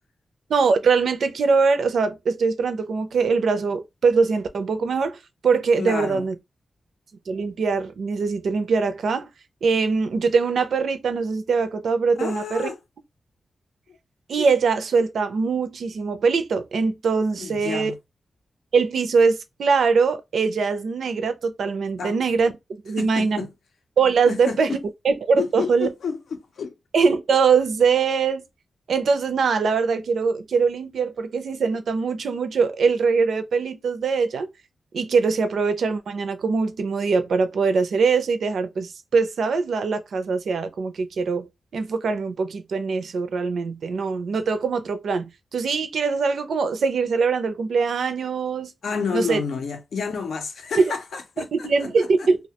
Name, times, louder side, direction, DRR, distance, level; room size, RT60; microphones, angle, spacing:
voice 1, 0.5-6.4 7.3-9.3 9.6-12.7 14.3-17.9 18.7-22.5 22.8-23.5 24.0-24.8 25.0-25.9 26.9-28.4 28.9-34.5 34.9-41.5 41.7-48.7 49.1-49.4 50.8-50.9 51.4-52.4, right 5 dB, 75° right, 0.4 m, -22 dB
voice 2, 5.8-6.3 12.2-12.8 17.4-18.0 22.0-22.2 23.0-23.5 24.3-24.8 25.4-26.7 48.8-52.3, left 5 dB, 80° left, 0.5 m, -30 dB
2.3 x 2.1 x 2.7 m
wide cardioid pair, 150°, 0 cm